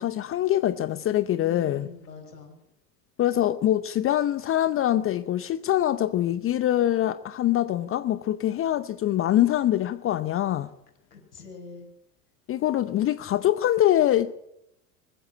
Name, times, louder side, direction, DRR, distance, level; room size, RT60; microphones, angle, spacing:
voice 1, 0.0-1.9 3.2-10.7 12.5-14.3, left 12 dB, 25° left, 0.8 m, -24 dB
voice 2, 1.3-2.6 11.1-11.9, left 4 dB, 80° left, 5.5 m, -44 dB
21.0 x 15.0 x 8.6 m
figure-of-eight pair, 80°, 48 cm